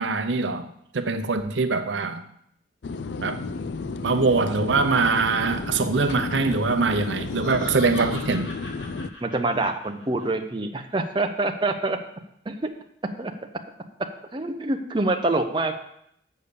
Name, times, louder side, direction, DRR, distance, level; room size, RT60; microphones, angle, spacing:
voice 1, 0.0-2.2 3.2-3.5 4.0-8.5, right 4 dB, 80° right, 0.7 m, -23 dB
sound 1, 2.8-9.1, left 4 dB, 65° left, 0.4 m, -32 dB
Laughter, 7.0-10.3, left 1 dB, 85° left, 2.0 m, -41 dB
voice 2, 9.2-12.0 12.5-12.6 13.2-13.3 14.3-15.8, right 2 dB, 25° right, 0.6 m, -25 dB
7.1 x 6.6 x 6.7 m
head